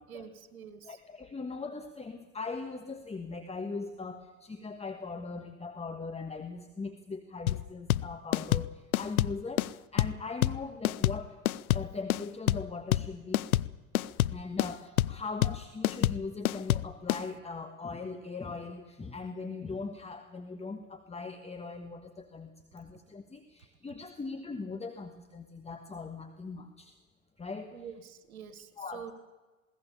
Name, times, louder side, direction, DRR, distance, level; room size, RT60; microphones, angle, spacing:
voice 1, 0.1-1.0 27.7-29.1, right 8 dB, 80° right, 11 dB, 1.8 m, -46 dB
voice 2, 0.8-9.6 9.9-11.4 11.7-13.5 14.3-26.9 27.4-27.7 28.8-29.1, left 4 dB, 15° left, 7 dB, 1.5 m, -40 dB
sound 1, 7.5-17.2, left 14 dB, 80° left, 0.5 m, -28 dB
21.0 x 18.0 x 7.0 m, 1.2 s
figure-of-eight pair, 75°, 42 cm